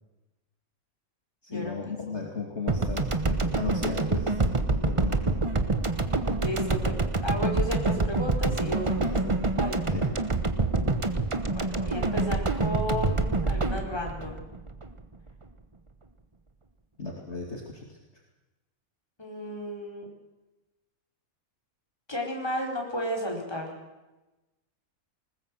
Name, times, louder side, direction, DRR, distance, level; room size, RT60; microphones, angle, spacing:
voice 1, 1.4-5.3 9.0-9.4 9.9-10.2 17.0-18.0, left 4 dB, 45° left, 0 dB, 2.7 m, -35 dB
sound 1, 2.7-15.1, right 3 dB, 25° right, 1.1 m, -26 dB
voice 2, 6.4-9.1 9.6-9.8 11.4-14.5 19.2-20.1 22.1-23.7, left 1 dB, 15° left, -1 dB, 4.8 m, -33 dB
20.0 x 20.0 x 7.7 m, 1.1 s
omnidirectional pair, 1.6 m